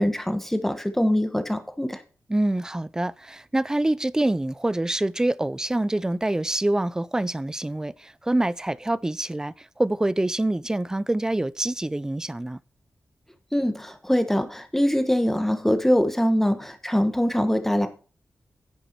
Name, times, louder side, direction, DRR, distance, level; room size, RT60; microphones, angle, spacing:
voice 1, 0.0-2.0 13.5-17.9, equal, 5° left, 1.2 m, -23 dB
voice 2, 2.3-12.6, right 1 dB, 10° right, 0.4 m, -26 dB
9.9 x 8.2 x 4.5 m
wide cardioid pair, 120°, 5 cm